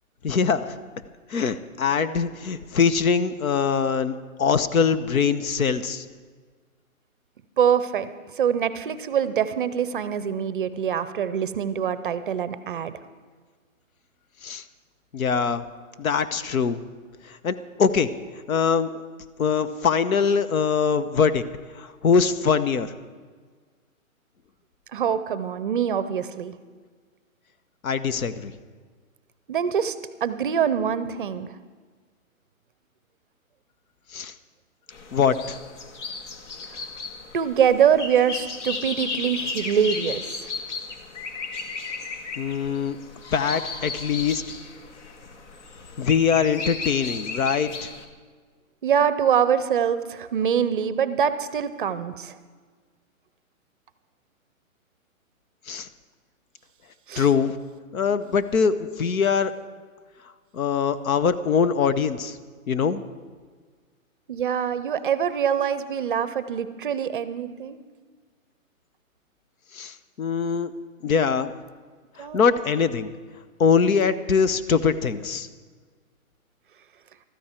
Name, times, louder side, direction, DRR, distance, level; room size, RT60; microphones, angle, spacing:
voice 1, 0.2-0.8 1.3-6.1 14.4-14.6 15.1-15.6 16.0-16.8 17.3-18.1 18.5-19.0 19.4-21.4 21.8-22.9 27.8-28.5 34.1-34.3 35.1-35.6 42.4-43.0 43.3-44.4 46.0-47.9 55.7-55.9 57.2-57.6 57.9-59.5 60.5-62.4 62.7-63.0 69.7-70.7 71.0-71.5 72.2-73.1 73.6-75.5, left 6 dB, 75° left, 12 dB, 1.0 m, -23 dB
voice 2, 7.6-8.1 8.4-12.9 24.9-26.5 29.5-30.0 30.2-31.5 37.3-40.2 48.8-52.3 57.1-57.3 64.3-67.8 72.2-72.4, right 8 dB, 40° right, 13 dB, 0.6 m, -24 dB
sound 1, 34.9-48.1, left 4 dB, 55° left, 1.5 m, -35 dB
15.0 x 13.5 x 4.4 m, 1.5 s
hypercardioid pair, 150°, 42 cm